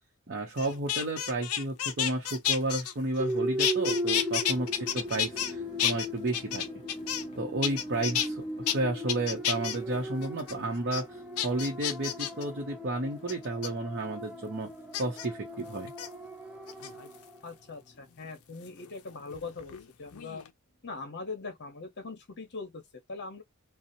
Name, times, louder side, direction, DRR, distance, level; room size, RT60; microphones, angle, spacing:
voice 1, 0.3-6.7 7.4-14.7 15.0-15.9, right 2 dB, 50° right, 0.7 m, -32 dB
sound 1, 0.6-3.3 3.6-5.5 5.8-7.3 7.6-8.3 8.7-8.8 9.1-9.8 10.2-10.5 10.9-11.0 11.4-12.4 13.3-13.7 14.9-15.3 15.9-16.1 16.7-17.2 18.7-19.8 20.1-20.5, left 10 dB, 70° left, 0.4 m, -31 dB
sound 2, 3.2-17.4, equal, 5° right, 0.4 m, -37 dB
sound 3, 4.5-19.1 19.5-19.6, right 1 dB, 25° left, 0.8 m, -54 dB
voice 2, 17.4-20.4 20.8-23.4, left 4 dB, 50° left, 0.9 m, -41 dB
2.7 x 2.0 x 2.6 m
head